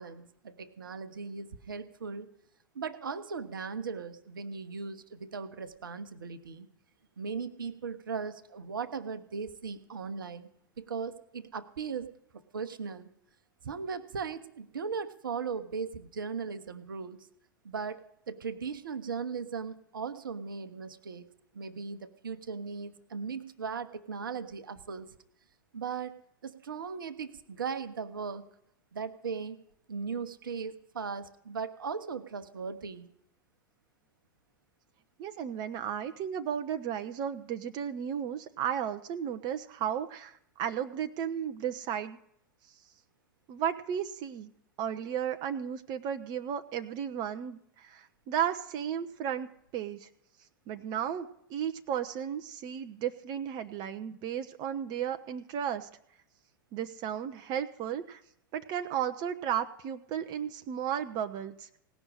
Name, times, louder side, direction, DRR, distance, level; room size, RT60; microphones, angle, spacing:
voice 1, 0.0-2.3 2.7-6.7 7.2-10.5 10.8-12.1 12.3-13.1 13.6-17.3 17.6-21.3 21.5-25.1 25.7-26.1 26.4-28.4 28.9-29.6 29.9-33.1, right 5 dB, 75° right, 11 dB, 1.1 m, -38 dB
voice 2, 35.2-42.2 43.5-44.5 44.8-49.5 49.7-50.1 50.7-55.9 56.7-58.2 58.5-61.8, right 9 dB, 40° right, 8 dB, 0.8 m, -34 dB
17.5 x 6.2 x 9.8 m, 0.72 s
figure-of-eight pair, 95°, 11 cm